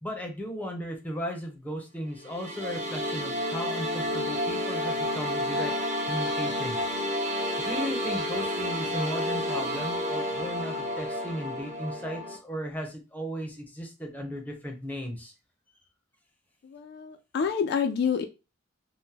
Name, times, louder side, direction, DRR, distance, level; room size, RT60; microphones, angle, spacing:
voice 1, 0.0-5.7 6.0-7.0 7.6-15.3, equal, 10° left, 2 dB, 0.7 m, -36 dB
sound 1, 2.2-12.4, left 1 dB, 40° right, 0.7 m, -30 dB
voice 2, 16.6-18.2, left 6 dB, 55° left, 7 dB, 0.3 m, -28 dB
3.5 x 2.1 x 2.8 m, 0.28 s
head